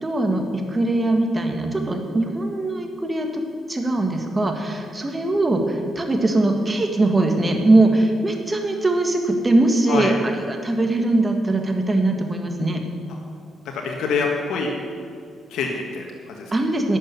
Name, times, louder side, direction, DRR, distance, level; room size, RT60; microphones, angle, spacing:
voice 1, 0.0-3.3 3.7-10.1 10.5-12.8 16.5-17.0, right 2 dB, 20° right, 4 dB, 1.8 m, -21 dB
voice 2, 13.7-14.7 15.5-16.5, left 4 dB, 75° left, 0 dB, 1.6 m, -25 dB
11.5 x 6.3 x 9.1 m, 2.3 s
cardioid pair, 90°, 0 cm